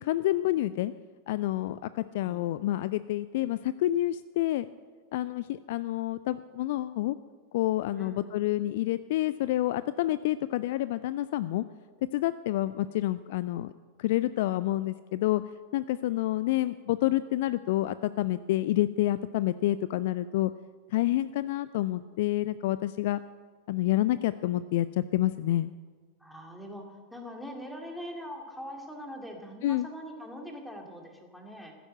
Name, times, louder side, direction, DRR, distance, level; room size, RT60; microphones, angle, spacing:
voice 1, 0.0-0.9 1.3-4.7 5.1-7.2 7.5-11.6 12.1-13.7 14.0-15.4 15.7-20.5 20.9-23.2 23.7-25.7 29.6-29.9, left 15 dB, 50° left, 15 dB, 0.4 m, -28 dB
voice 2, 2.2-2.6 8.0-8.4 26.2-31.8, equal, ahead, 2 dB, 2.5 m, -42 dB
14.5 x 10.0 x 7.7 m, 1.5 s
figure-of-eight pair, 90°, 0 cm